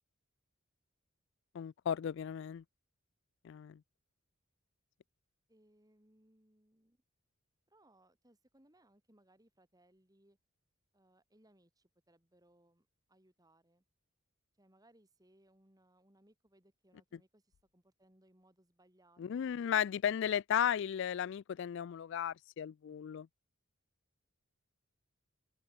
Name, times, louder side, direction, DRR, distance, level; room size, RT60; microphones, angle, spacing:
voice 1, 1.5-2.6 3.4-3.8 19.2-23.3, left 9 dB, 60° left, 0.3 m, -35 dB
voice 2, 5.5-7.0 7.7-10.4 10.9-13.8 14.6-19.6, right 1 dB, 20° right, 3.7 m, -68 dB
open air
head